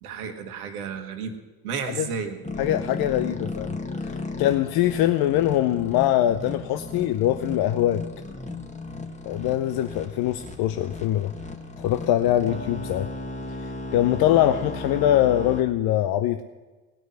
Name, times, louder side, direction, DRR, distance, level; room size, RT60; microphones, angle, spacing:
voice 1, 0.0-1.4 1.6-2.4, right 5 dB, 80° right, 6 dB, 1.6 m, -32 dB
sound 1, 2.4-15.6, left 2 dB, 15° left, 1.8 m, -35 dB
voice 2, 2.6-3.7 4.0-8.0 9.2-11.3 11.8-13.1 13.6-16.4, left 12 dB, 55° left, 9 dB, 0.8 m, -23 dB
18.0 x 6.2 x 9.6 m, 1.3 s
hypercardioid pair, 60°, 44 cm